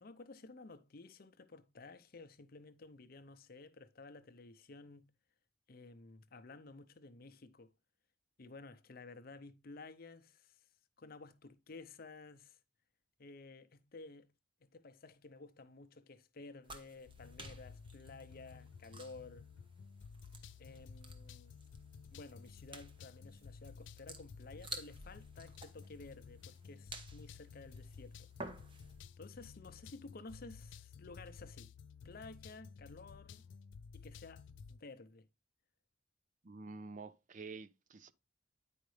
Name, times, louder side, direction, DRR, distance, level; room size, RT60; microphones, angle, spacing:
voice 1, 0.0-5.1 5.7-7.7 8.4-10.6 11.0-12.6 13.2-14.3 14.6-19.5 20.6-21.6 22.1-28.3 29.2-31.7 32.0-33.5 33.9-35.3, left 3 dB, 55° left, 0.7 m, -54 dB
sound 1, 16.6-29.1, right 2 dB, 30° right, 1.0 m, -53 dB
sound 2, 17.1-34.8, left 5 dB, 90° left, 0.4 m, -54 dB
voice 2, 36.4-38.1, right 4 dB, 45° right, 0.5 m, -49 dB
9.3 x 5.0 x 3.2 m
head